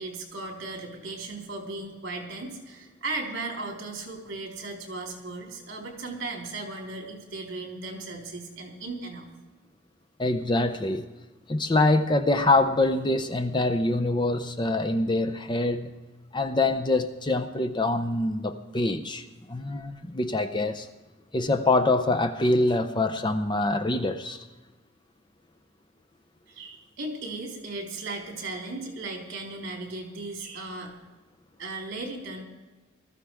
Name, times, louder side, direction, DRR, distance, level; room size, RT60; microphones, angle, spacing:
voice 1, 0.0-9.3 26.5-30.9 31.6-32.4, right 2 dB, 60° right, 0 dB, 3.8 m, -36 dB
voice 2, 10.2-11.1 11.5-15.9 16.3-20.9 21.3-24.4, left 2 dB, 25° left, 9 dB, 0.6 m, -25 dB
19.0 x 14.0 x 3.5 m, 1.2 s
head